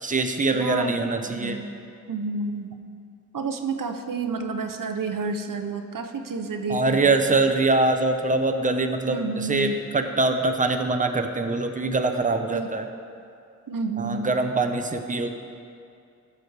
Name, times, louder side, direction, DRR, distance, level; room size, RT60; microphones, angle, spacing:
voice 1, 0.0-1.6 6.7-12.9 14.0-15.3, right 3 dB, 25° right, 5 dB, 0.6 m, -23 dB
voice 2, 0.5-1.7 2.1-2.7 3.3-7.5 9.1-9.8 12.5-12.7 13.7-14.3, right 3 dB, 85° right, 6 dB, 0.6 m, -30 dB
14.0 x 6.7 x 3.3 m, 2.4 s
wide cardioid pair, 70°, 32 cm